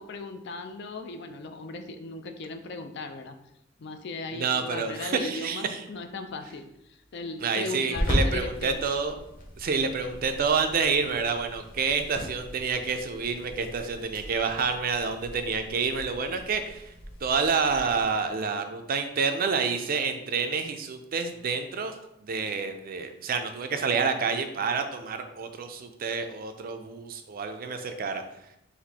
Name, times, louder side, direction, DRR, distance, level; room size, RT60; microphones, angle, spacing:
voice 1, 0.0-3.4 3.8-6.7 7.1-8.8, left 2 dB, 60° left, 7 dB, 0.4 m, -37 dB
voice 2, 4.3-5.8 7.4-9.1 9.6-16.9 17.2-21.9 22.2-28.2, right 5 dB, 45° right, 7 dB, 0.4 m, -28 dB
sound 1, 5.9-18.1, equal, 45° left, 1.1 m, -37 dB
4.2 x 2.6 x 4.1 m, 0.83 s
head